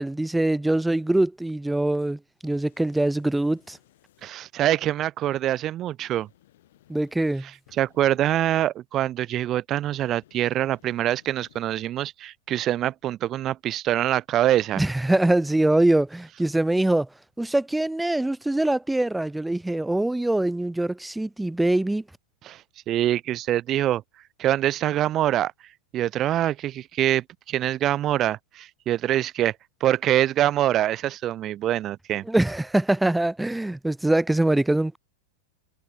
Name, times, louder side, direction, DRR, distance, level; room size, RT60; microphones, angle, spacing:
voice 1, 0.0-3.8 6.9-7.5 14.8-17.1 17.4-22.0 32.3-35.0, right 1 dB, 5° right, 0.5 m, -23 dB
sound 1, 2.4-4.3 6.1-8.4 10.2-11.8, left 14 dB, 70° left, 8.0 m, -59 dB
voice 2, 4.2-6.3 7.8-14.8 22.4-22.6 22.9-24.0 24.4-25.5 25.9-29.5 29.8-32.2, right 12 dB, 35° right, 1.2 m, -24 dB
hypercardioid pair, 115°, 0 cm